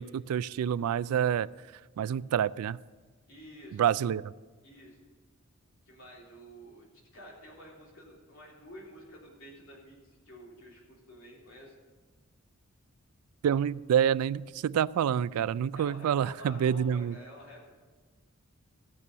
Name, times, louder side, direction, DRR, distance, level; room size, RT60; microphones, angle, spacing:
voice 1, 0.0-1.5 2.0-2.8 3.7-4.3 13.4-17.2, right 9 dB, 80° right, 18 dB, 0.3 m, -27 dB
voice 2, 3.3-3.8 4.6-5.0 5.9-6.9 7.1-11.7 15.7-17.7, equal, 65° left, -3 dB, 3.4 m, -50 dB
15.0 x 6.9 x 6.7 m, 1.3 s
head